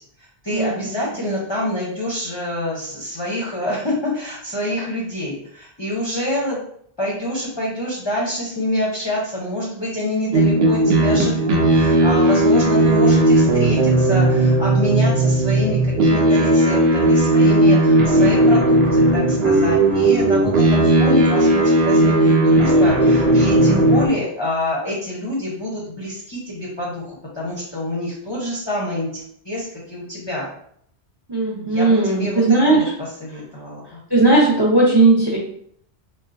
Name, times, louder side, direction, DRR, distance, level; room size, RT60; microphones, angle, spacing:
voice 1, 0.4-6.6 7.0-30.5 31.6-32.8 33.2-33.8, left 1 dB, 30° left, -5 dB, 0.6 m, -26 dB
sound 1, 10.3-24.1, right 1 dB, 70° right, 0.8 m, -16 dB
voice 2, 31.3-32.8 34.1-35.4, right 3 dB, 30° right, -5 dB, 0.6 m, -16 dB
3.7 x 2.2 x 2.4 m, 0.65 s
omnidirectional pair, 1.1 m